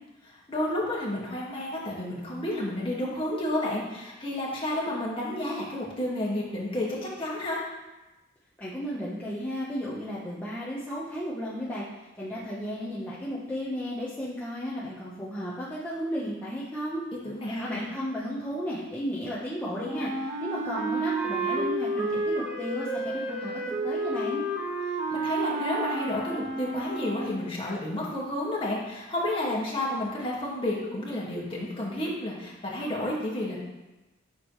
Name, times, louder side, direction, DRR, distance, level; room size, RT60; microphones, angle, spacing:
voice 1, 0.3-7.6 17.2-17.9 25.1-33.6, left 1 dB, 25° left, -4 dB, 1.9 m, -31 dB
voice 2, 8.6-11.9 12.2-17.0 17.5-23.5 23.8-24.4, equal, 10° left, -9 dB, 1.1 m, -34 dB
Wind instrument woodwind instrument, 19.8-27.5, right 2 dB, 15° right, 1.5 m, -31 dB
12.0 x 6.6 x 3.2 m, 1.1 s
head